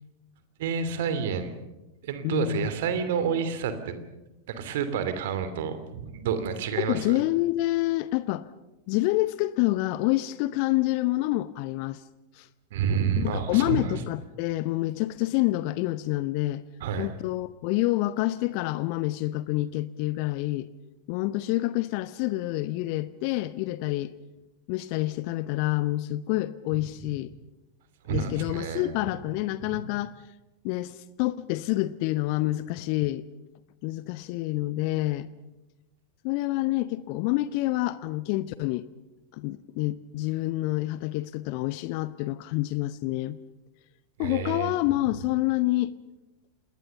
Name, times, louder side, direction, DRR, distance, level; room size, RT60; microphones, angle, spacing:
voice 1, 0.6-1.6 2.0-4.0 4.5-7.2 12.7-13.9 16.8-17.1 28.0-28.9 29.6-29.8 44.2-44.7, right 7 dB, 55° right, 10 dB, 2.8 m, -29 dB
voice 2, 2.2-2.7 6.8-8.5 8.9-12.0 12.3-12.5 13.2-16.6 17.0-20.7 21.1-24.1 24.7-27.3 28.1-30.1 30.6-33.3 33.8-35.3 36.2-38.9 39.3-43.4 44.2-45.9, left 17 dB, 45° left, 16 dB, 0.7 m, -27 dB
27.5 x 20.5 x 6.9 m, 1.0 s
figure-of-eight pair, 90°, 0 cm